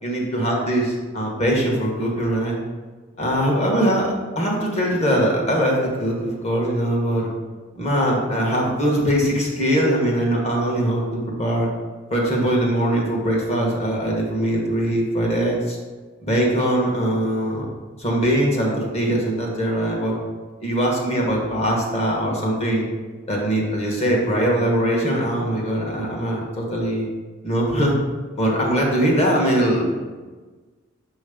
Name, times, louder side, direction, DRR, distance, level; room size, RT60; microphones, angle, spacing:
voice 1, 0.0-2.6 3.2-7.3 7.8-11.0 11.4-11.7 12.1-15.8 16.2-17.6 18.0-20.2 20.6-22.8 23.3-27.1 27.4-28.0 28.4-29.9, right 1 dB, 30° left, -2 dB, 1.3 m, -21 dB
6.9 x 3.1 x 5.0 m, 1.3 s
head